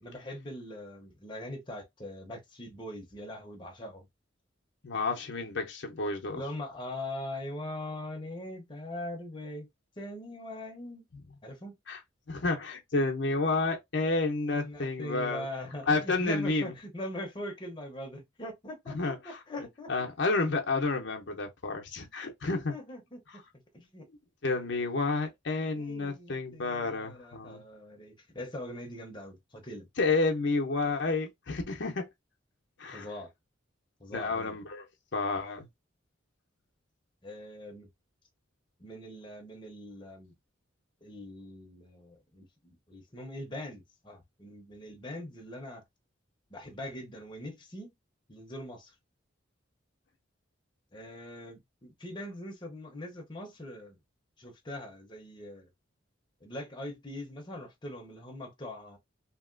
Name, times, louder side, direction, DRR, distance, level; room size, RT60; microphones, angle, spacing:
voice 1, 0.0-4.1 6.3-9.7 10.0-11.0 11.4-11.8 14.5-19.9 22.5-24.1 25.8-29.9 32.9-33.3 34.0-34.6 37.2-37.9 38.8-40.3 41.0-45.8 46.5-47.9 48.3-48.9 50.9-54.0 54.4-55.7 56.4-59.0, left 1 dB, 25° left, 0.7 m, -42 dB
voice 2, 4.8-6.4 11.9-12.0 12.3-15.5 15.9-16.7 18.9-19.2 19.9-22.7 24.4-27.6 30.0-32.1 32.8-33.1 34.1-34.8 35.1-35.7, left 3 dB, 65° left, 0.7 m, -30 dB
2.8 x 2.8 x 2.5 m
head